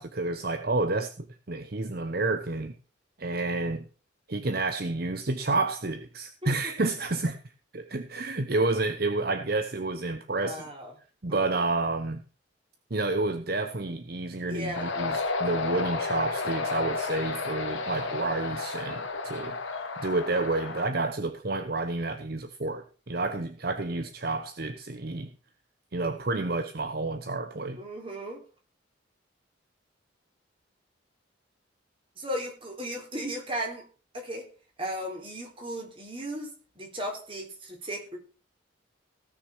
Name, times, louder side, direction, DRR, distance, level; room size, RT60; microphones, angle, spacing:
voice 1, 0.0-2.8 3.2-3.8 4.3-7.4 7.7-10.6 11.2-12.2 12.9-19.6 20.0-25.3 25.9-27.8, right 2 dB, 50° right, 8 dB, 0.9 m, -30 dB
voice 2, 6.4-6.7 10.3-10.9 11.3-11.4 14.5-14.9 27.8-28.4 32.2-33.8 34.1-34.5 34.8-38.2, equal, 25° right, 1 dB, 3.9 m, -36 dB
sound 1, 14.7-20.9, left 3 dB, 90° left, 2.1 m, -32 dB
17.0 x 6.3 x 6.2 m, 0.37 s
head